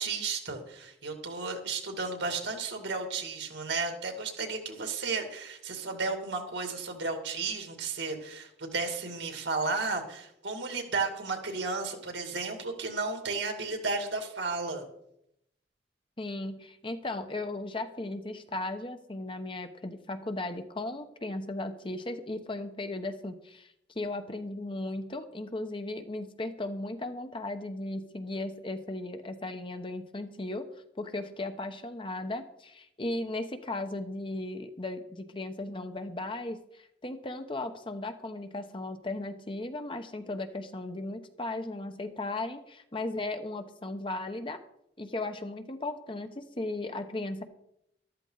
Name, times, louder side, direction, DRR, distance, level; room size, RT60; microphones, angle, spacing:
voice 1, 0.0-14.8, right 4 dB, 80° right, 4 dB, 2.7 m, -33 dB
voice 2, 16.2-30.6 31.0-44.6 45.0-47.4, left 2 dB, 30° left, 8 dB, 1.0 m, -36 dB
13.5 x 13.0 x 4.0 m, 0.77 s
head